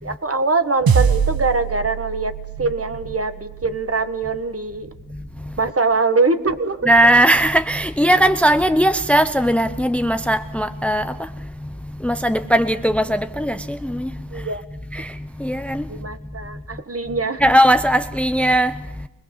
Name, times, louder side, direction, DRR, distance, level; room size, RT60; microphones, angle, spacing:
voice 1, 0.0-4.9 5.6-6.9 14.3-14.6 15.9-17.5, right 3 dB, 40° right, 1.8 m, -23 dB
sound 1, 0.9-5.4, right 6 dB, 75° right, 1.1 m, -25 dB
voice 2, 6.9-11.0 12.0-14.1 15.0-15.1 15.4-15.8 17.4-18.7, right 1 dB, 5° left, 0.8 m, -18 dB
25.0 x 20.5 x 7.3 m
wide cardioid pair, 100°, 36 cm